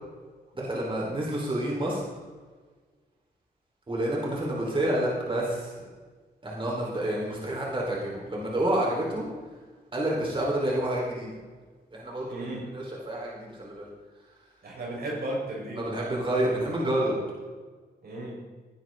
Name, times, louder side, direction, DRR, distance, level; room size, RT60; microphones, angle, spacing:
voice 1, 0.5-2.0 3.9-5.7 6.4-9.3 9.9-11.3 11.9-13.9 15.8-17.2, right 1 dB, 30° right, -4 dB, 4.7 m, -29 dB
voice 2, 12.0-12.7 14.6-15.8 18.0-18.4, right 1 dB, 65° right, -2 dB, 5.3 m, -35 dB
19.5 x 11.0 x 4.0 m, 1.4 s
cardioid pair, 90°, 17 cm